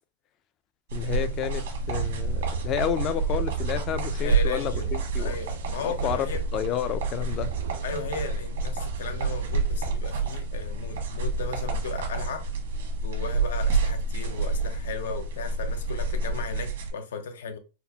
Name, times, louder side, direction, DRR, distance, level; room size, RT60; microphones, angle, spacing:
voice 1, 0.9-5.4 5.8-7.5, left 10 dB, 25° left, 0.3 m, -30 dB
sound 1, 0.9-16.9, right 3 dB, 85° right, 1.1 m, -29 dB
sound 2, 1.7-9.8, right 11 dB, 70° right, 0.3 m, -37 dB
voice 2, 4.2-4.9 5.2-6.5 7.8-12.5 13.0-17.6, left 5 dB, 90° left, 0.6 m, -36 dB
4.3 x 2.1 x 2.7 m
supercardioid pair, 170°, 0 cm